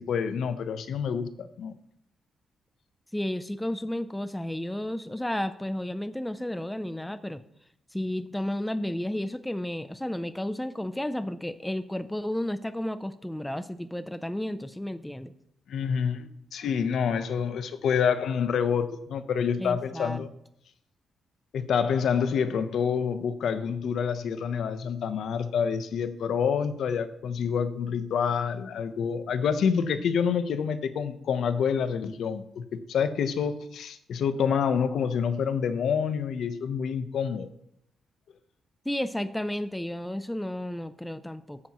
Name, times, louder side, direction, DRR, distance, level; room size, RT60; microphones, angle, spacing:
voice 1, 0.0-1.8 15.7-20.3 21.5-37.5, left 7 dB, 65° left, 11 dB, 0.8 m, -27 dB
voice 2, 3.1-7.4 7.9-15.3 19.6-20.3 38.9-41.6, left 1 dB, 5° left, 11 dB, 0.4 m, -32 dB
15.0 x 9.8 x 3.0 m, 0.74 s
wide cardioid pair, 170°, 0 cm